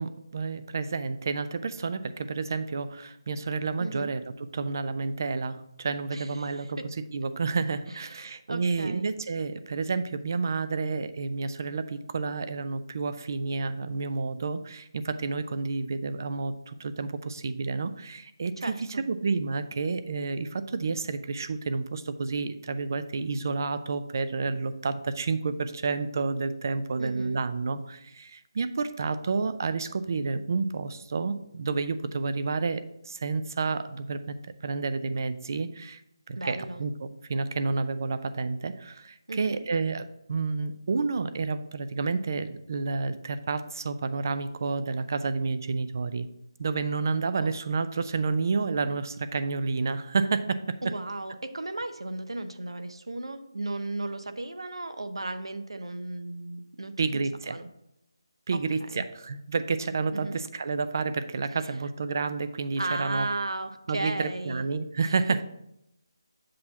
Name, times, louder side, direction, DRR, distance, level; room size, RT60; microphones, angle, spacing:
voice 1, 0.0-4.2 4.5-6.8 7.1-34.3 34.6-36.0 36.3-46.3 46.6-50.6 57.0-57.6 58.5-63.3 63.9-65.4, right 4 dB, 45° right, 12 dB, 0.4 m, -30 dB
voice 2, 3.8-4.1 6.1-6.7 7.9-9.1 18.6-19.0 27.0-27.4 36.3-36.8 39.3-39.6 47.4-47.5 50.8-57.7 58.5-59.0 60.1-60.4 62.8-64.6, right 2 dB, 90° right, 10 dB, 0.7 m, -35 dB
7.5 x 2.8 x 5.8 m, 0.82 s
figure-of-eight pair, 165°, 3 cm